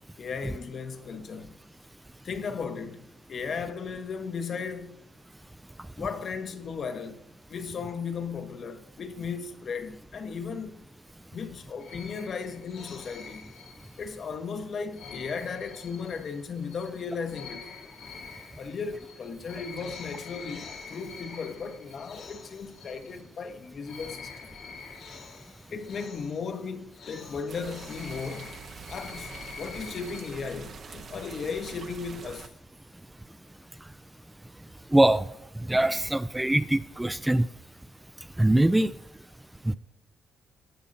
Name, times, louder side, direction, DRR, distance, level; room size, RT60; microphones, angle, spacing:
voice 1, 0.2-1.6 2.2-5.0 6.0-7.2 7.5-10.8 11.3-13.5 14.0-18.1 18.6-24.6 25.7-28.5 28.9-32.5, left 5 dB, 55° left, 0.9 m, -36 dB
sound 1, 11.8-14.3 14.9-23.5 23.8-30.3, left 5 dB, 75° left, 1.6 m, -46 dB
sound 2, 27.5-32.5, right 5 dB, 55° right, 0.8 m, -44 dB
voice 2, 34.9-35.3 35.7-37.5 38.4-38.9 39.7-39.8, right 1 dB, 10° right, 0.3 m, -22 dB
15.5 x 5.6 x 2.6 m
cardioid pair, 90°, 0 cm